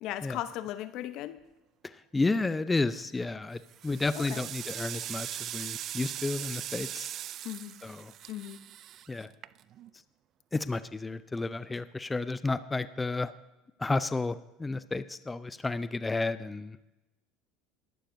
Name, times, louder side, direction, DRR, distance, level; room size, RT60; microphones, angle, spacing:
voice 1, 0.0-1.4 4.3-4.4 7.4-7.8 8.3-8.6, left 13 dB, 60° left, 13 dB, 0.7 m, -37 dB
voice 2, 1.8-7.1 7.8-8.1 9.1-9.3 10.5-13.3 13.8-16.8, left 3 dB, 15° left, 14 dB, 0.5 m, -32 dB
sound 1, 2.8-3.2 3.6-9.9, right 11 dB, 50° right, 0.3 m, -40 dB
21.5 x 11.5 x 2.7 m, 1.0 s
hypercardioid pair, 75°, 0 cm